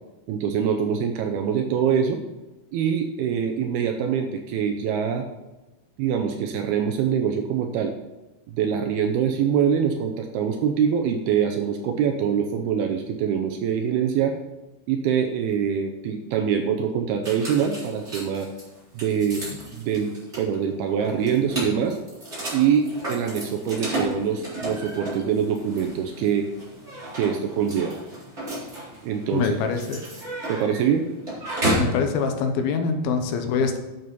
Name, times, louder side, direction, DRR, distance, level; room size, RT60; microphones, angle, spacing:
voice 1, 0.3-2.2 2.7-5.3 6.0-7.9 8.5-14.4 14.9-18.5 18.9-20.1 20.4-22.0 22.5-26.5 27.1-28.0 29.0-29.6 30.5-31.1, right 7 dB, 80° right, 5 dB, 2.4 m, -24 dB
sound 1, 17.2-32.0, right 1 dB, 15° right, 3.7 m, -33 dB
voice 2, 29.3-30.0 31.8-33.8, left 5 dB, 75° left, 5 dB, 2.6 m, -24 dB
9.4 x 7.3 x 5.3 m, 1.1 s
omnidirectional pair, 4.9 m